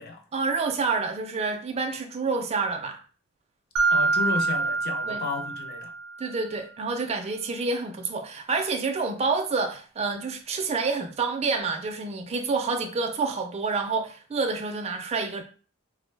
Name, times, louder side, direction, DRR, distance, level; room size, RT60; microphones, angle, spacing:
voice 1, 0.3-3.0 5.0-5.2 6.2-15.4, right 4 dB, 30° right, 0.3 m, -28 dB
Mallet percussion, 3.8-6.3, right 4 dB, 85° right, 0.5 m, -26 dB
voice 2, 3.9-5.9, left 4 dB, 50° left, 0.4 m, -32 dB
2.4 x 2.0 x 3.1 m
head